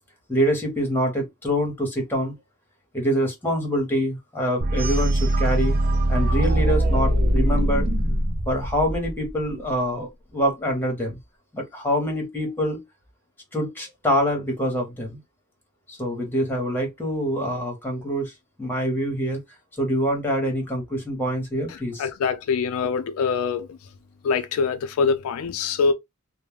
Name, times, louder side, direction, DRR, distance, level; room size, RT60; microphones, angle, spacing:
voice 1, 0.3-2.3 2.9-5.7 6.1-7.9 8.5-11.2 11.5-12.8 13.5-15.2 15.9-18.3 18.6-19.4 19.8-22.1, equal, 10° left, 0.9 m, -25 dB
sound 1, 4.6-9.5, right 1 dB, 40° right, 0.5 m, -22 dB
voice 2, 22.0-23.8 24.2-25.9, left 5 dB, 75° left, 0.3 m, -24 dB
2.3 x 2.0 x 3.2 m
head